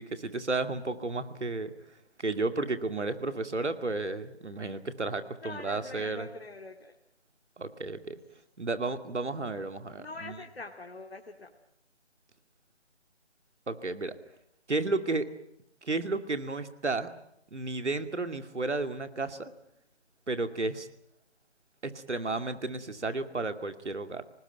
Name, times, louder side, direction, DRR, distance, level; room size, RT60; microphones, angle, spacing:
voice 1, 0.0-1.7 2.2-6.3 7.6-8.2 8.6-10.4 13.7-14.1 14.7-15.3 15.8-17.1 17.5-19.5 20.3-20.9 21.8-24.2, right 3 dB, 80° right, 9 dB, 2.5 m, -32 dB
voice 2, 5.4-6.9 10.0-11.5, left 3 dB, 60° left, 3 dB, 2.5 m, -43 dB
26.5 x 19.5 x 9.2 m, 0.77 s
figure-of-eight pair, 180°, 34 cm